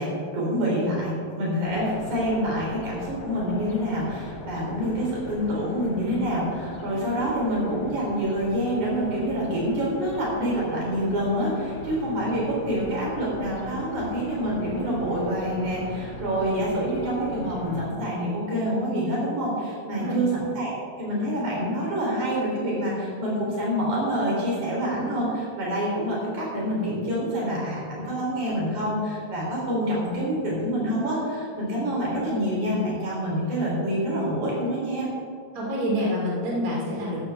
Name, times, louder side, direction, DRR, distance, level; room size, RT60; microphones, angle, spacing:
voice 1, 0.0-20.7 21.0-35.1, equal, 80° right, -5 dB, 5.0 m, -27 dB
sound 1, 1.6-17.8, left 2 dB, 80° left, 0.8 m, -40 dB
voice 2, 35.5-37.2, equal, 30° right, -4 dB, 2.8 m, -27 dB
14.0 x 12.0 x 3.5 m, 2.3 s
omnidirectional pair, 3.4 m